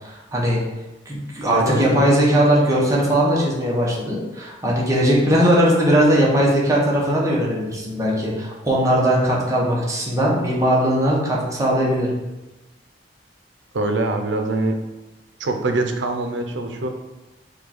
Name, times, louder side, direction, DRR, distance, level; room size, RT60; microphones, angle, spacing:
voice 1, 0.0-0.6 1.1-12.1, equal, 20° right, -4 dB, 0.9 m, -19 dB
voice 2, 1.5-1.9 13.7-14.8 15.4-16.9, right 2 dB, 85° right, 5 dB, 0.5 m, -23 dB
4.9 x 2.3 x 4.2 m, 1.0 s
head